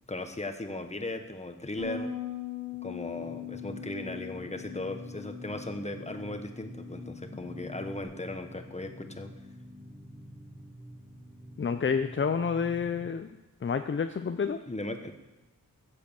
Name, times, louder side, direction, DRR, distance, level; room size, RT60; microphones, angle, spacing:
voice 1, 0.1-2.1 2.8-9.3 14.7-15.1, left 2 dB, 20° left, 7 dB, 1.2 m, -37 dB
Bass guitar, 1.8-8.0, left 8 dB, 30° right, 4.4 m, -42 dB
sound 1, 3.1-13.1, equal, 15° right, 3.5 m, -47 dB
voice 2, 11.6-13.3 13.6-14.6, left 6 dB, 35° left, 9 dB, 0.5 m, -29 dB
14.5 x 7.8 x 7.0 m, 1.0 s
wide cardioid pair, 100°, 34 cm